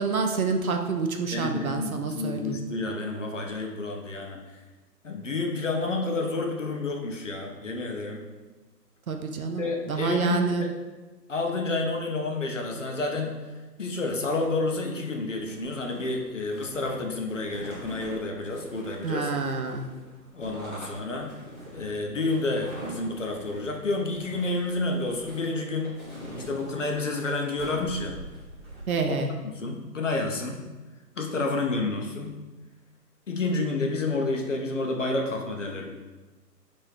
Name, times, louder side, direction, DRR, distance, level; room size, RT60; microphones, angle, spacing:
voice 1, 0.0-2.6 9.1-10.7 19.0-19.9 28.9-29.3, right 4 dB, 60° right, 4 dB, 0.5 m, -28 dB
voice 2, 1.3-4.4 5.0-8.2 9.6-10.7 11.3-13.4 13.8-19.3 20.3-21.3 21.7-26.0 26.4-28.2 29.1-29.2 29.4-30.6 31.2-32.4 33.3-35.9, left 2 dB, 50° left, 2 dB, 0.5 m, -29 dB
sound 1, 15.2-28.9, right 1 dB, 5° left, 1.0 m, -44 dB
4.3 x 2.6 x 3.3 m, 1.2 s
figure-of-eight pair, 150°, 50 cm